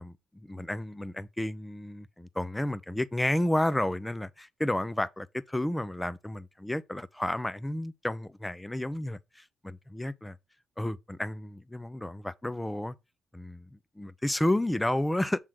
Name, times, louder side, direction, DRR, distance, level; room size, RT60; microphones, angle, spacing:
voice 1, 0.0-10.4 10.8-13.0 13.3-15.4, left 1 dB, 10° left, 0.6 m, -31 dB
7.7 x 3.6 x 6.1 m
cardioid pair, 90°, 0 cm